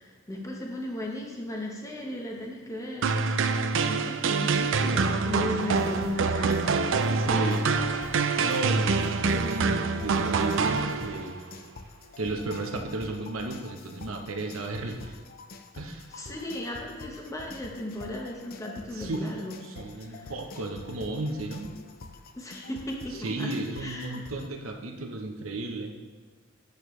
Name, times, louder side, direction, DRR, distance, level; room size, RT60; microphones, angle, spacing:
voice 1, 0.0-7.0 7.2-8.1 16.1-19.6 20.0-20.3 22.3-23.5 23.8-24.2, left 1 dB, 15° left, 0 dB, 1.0 m, -36 dB
sound 1, 3.0-11.4, right 4 dB, 65° right, 0.4 m, -26 dB
sound 2, 5.6-24.5, left 3 dB, 45° left, 0.5 m, -46 dB
voice 2, 7.1-7.6 8.4-11.4 12.2-15.1 15.7-16.1 18.9-19.3 19.6-21.7 23.2-25.9, right 2 dB, 85° right, 3 dB, 0.9 m, -34 dB
8.9 x 6.6 x 3.2 m, 1.4 s
head